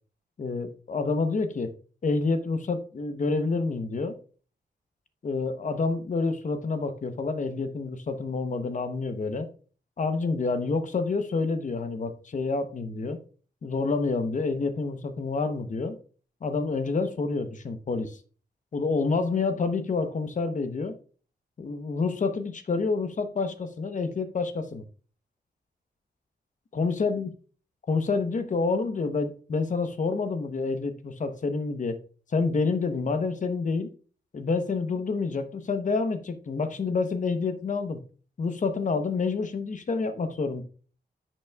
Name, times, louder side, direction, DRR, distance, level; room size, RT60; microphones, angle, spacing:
voice 1, 0.4-1.7 2.0-4.2 5.2-9.5 10.0-13.2 13.6-16.0 16.4-18.2 18.7-20.9 21.6-24.8 26.7-27.3 27.9-32.0 32.3-33.9 34.3-38.0 38.4-40.6, left 4 dB, 45° left, 0.9 m, -28 dB
10.5 x 6.1 x 2.3 m
wide cardioid pair, 145°, 18 cm